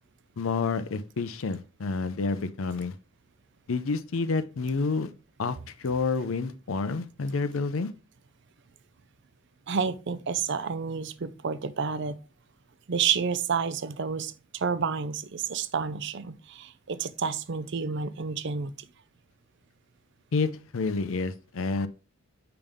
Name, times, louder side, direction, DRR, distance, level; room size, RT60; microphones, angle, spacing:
voice 1, 0.4-3.0 3.7-5.1 5.4-7.9 20.3-21.9, left 4 dB, 70° left, 0.5 m, -29 dB
voice 2, 9.7-12.2 12.9-18.9, right 6 dB, 55° right, 0.5 m, -30 dB
6.8 x 5.3 x 3.5 m
head